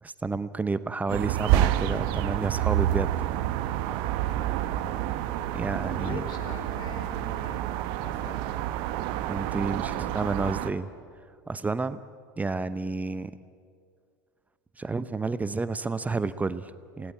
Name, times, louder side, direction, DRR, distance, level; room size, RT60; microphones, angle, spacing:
voice 1, 0.0-3.2 5.5-6.3 9.2-10.9 11.5-12.0 12.4-13.3 14.8-17.1, right 3 dB, 15° right, 14 dB, 0.9 m, -30 dB
sound 1, 1.1-10.7, right 13 dB, 55° right, 1.3 m, -28 dB
voice 2, 5.8-7.7 8.0-8.4, left 4 dB, 40° left, 7 dB, 4.3 m, -42 dB
28.5 x 18.0 x 8.7 m, 2.2 s
figure-of-eight pair, 75°, 11 cm